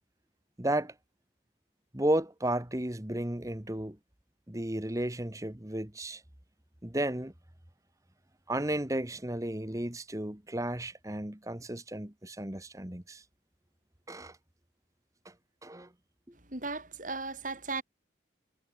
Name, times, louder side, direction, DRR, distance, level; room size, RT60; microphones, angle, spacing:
voice 1, 0.6-0.9 1.9-4.0 4.5-6.2 6.8-7.3 8.5-13.2 14.1-14.4 15.2-15.3 15.6-15.9, right 1 dB, 15° right, 1.4 m, -33 dB
voice 2, 16.5-17.8, right 3 dB, 45° right, 5.6 m, -36 dB
head